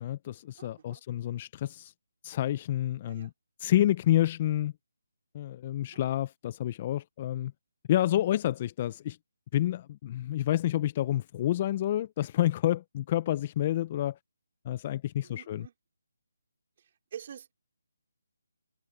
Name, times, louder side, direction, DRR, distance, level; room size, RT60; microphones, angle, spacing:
voice 1, 0.0-1.9 2.2-3.3 3.6-4.7 5.3-7.5 7.9-9.2 9.5-14.2 14.6-15.7, left 13 dB, 30° left, 0.6 m, -29 dB
voice 2, 0.6-1.0 3.0-3.3 5.8-6.1 15.2-15.7 16.8-17.5, right 8 dB, 40° right, 4.4 m, -47 dB
figure-of-eight pair, 160°, 0 cm